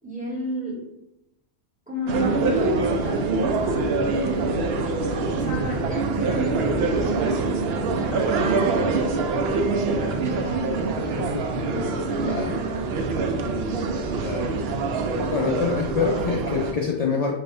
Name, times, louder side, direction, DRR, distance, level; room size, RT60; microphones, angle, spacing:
voice 1, 0.0-0.9 1.9-3.9 5.1-10.9 11.6-12.4 13.4-13.8, right 1 dB, 5° right, -6 dB, 1.4 m, -33 dB
sound 1, 2.1-16.7, right 3 dB, 65° right, 0.7 m, -25 dB
voice 2, 11.2-11.6 12.2-12.6 14.2-14.5 15.2-17.3, left 5 dB, 65° left, -1 dB, 0.4 m, -26 dB
6.0 x 2.6 x 3.3 m, 0.89 s
omnidirectional pair, 1.3 m